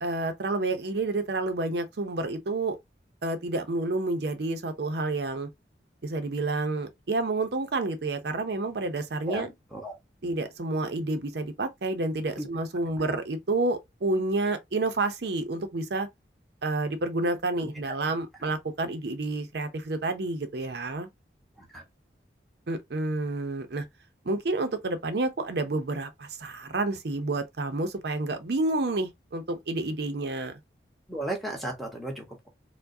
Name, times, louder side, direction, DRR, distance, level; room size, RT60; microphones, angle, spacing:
voice 1, 0.0-2.8 3.2-5.5 6.0-9.5 10.2-16.1 16.6-21.1 22.7-23.8 24.2-30.6, right 2 dB, 70° right, 0.6 m, -29 dB
voice 2, 31.1-32.5, right 1 dB, ahead, 1.1 m, -34 dB
4.5 x 2.2 x 2.6 m
head